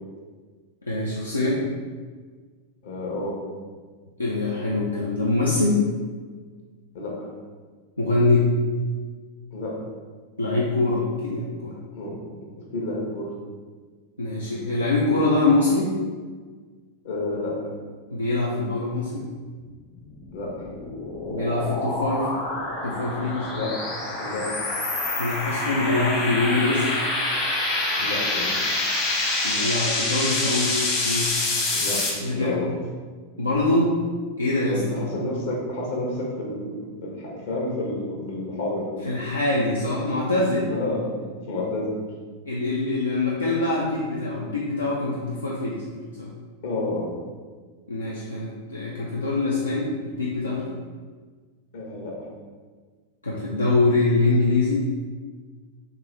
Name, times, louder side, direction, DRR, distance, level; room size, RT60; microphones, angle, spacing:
voice 1, 0.8-1.6 4.2-5.8 8.0-8.5 10.4-11.7 14.2-15.9 18.1-19.2 21.3-22.3 22.8-23.5 25.2-26.9 29.4-30.8 31.0-31.4 32.2-32.6 33.4-34.0 34.4-34.8 39.1-40.7 42.5-46.3 47.9-50.7 53.2-54.8, left 2 dB, 80° left, -5 dB, 0.5 m, -24 dB
voice 2, 2.8-3.4 6.9-7.3 9.5-9.8 11.9-12.1 12.7-13.3 17.0-17.7 20.3-20.6 23.5-23.8 24.2-24.5 28.0-28.5 31.7-32.7 34.6-38.9 40.7-42.0 46.6-47.1 51.7-52.3, left 2 dB, 60° left, -3 dB, 1.1 m, -30 dB
sound 1, 20.1-32.1, left 2 dB, 35° left, 1.0 m, -26 dB
3.7 x 3.5 x 3.1 m, 1.5 s
figure-of-eight pair, 90°, 0 cm